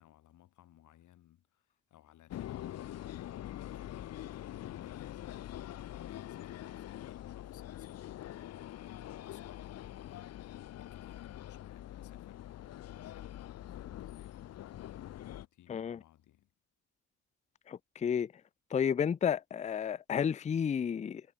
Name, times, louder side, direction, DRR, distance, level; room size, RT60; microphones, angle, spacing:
voice 1, 0.0-14.8 15.3-16.5, left 13 dB, 80° left, 3.1 m, -60 dB
sound 1, 2.3-15.5, left 12 dB, 60° left, 0.7 m, -44 dB
voice 2, 17.7-18.3 18.7-21.2, left 7 dB, 25° left, 0.4 m, -31 dB
cardioid pair, 115°, 30 cm